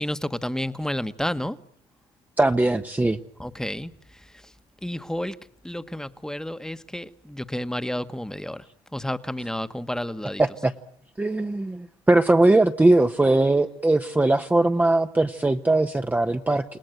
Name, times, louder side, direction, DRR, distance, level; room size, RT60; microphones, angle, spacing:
voice 1, 0.0-1.6 3.4-3.9 4.8-5.4 5.6-8.6 8.9-10.4, left 1 dB, 5° left, 1.3 m, -30 dB
voice 2, 2.4-3.2 10.4-10.7 11.2-16.6, right 2 dB, 15° right, 1.0 m, -20 dB
29.0 x 18.5 x 9.1 m
supercardioid pair, 75°, 13 cm